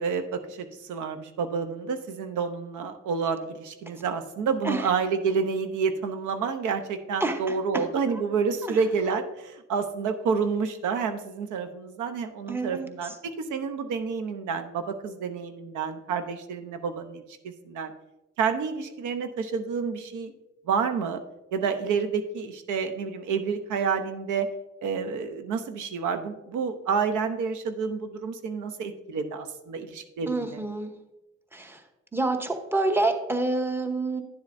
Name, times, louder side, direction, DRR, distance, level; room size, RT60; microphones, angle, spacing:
voice 1, 0.0-17.9 18.4-20.3 20.7-21.2 21.5-24.5 24.8-30.5, right 5 dB, 80° right, 8 dB, 0.8 m, -29 dB
voice 2, 7.2-7.8 8.6-8.8 12.5-12.9 30.3-30.9 31.5-31.8 32.1-34.2, right 2 dB, 10° right, 6 dB, 0.9 m, -28 dB
10.0 x 7.2 x 2.6 m, 0.96 s
cardioid pair, 90°, 30 cm